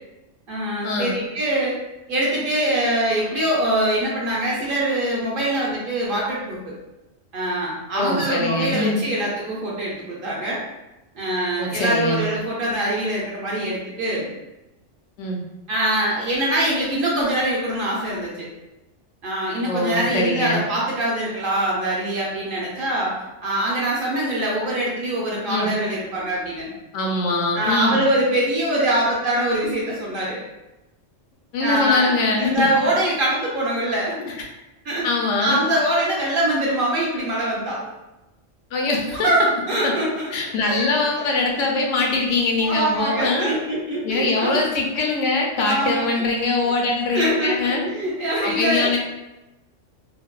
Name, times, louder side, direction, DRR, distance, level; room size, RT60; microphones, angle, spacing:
voice 1, 0.5-1.7 2.1-6.7 7.3-10.6 11.2-14.3 15.7-18.5 19.2-26.7 27.5-30.4 31.6-34.2 34.8-35.1 35.4-37.9 39.1-40.9 41.1-41.5 42.6-44.6 45.7-46.2 47.1-48.9, right 1 dB, 60° right, -5 dB, 0.6 m, -23 dB
voice 2, 7.9-9.0 11.6-12.2 15.2-15.4 19.7-20.6 25.5-25.7 26.9-28.0 31.5-32.5 35.0-35.6 38.7-39.3 39.8-39.9 40.3-43.5 44.0-47.8 48.4-49.0, left 3 dB, 85° left, 0 dB, 0.9 m, -22 dB
2.6 x 2.1 x 2.3 m, 0.99 s
omnidirectional pair, 1.3 m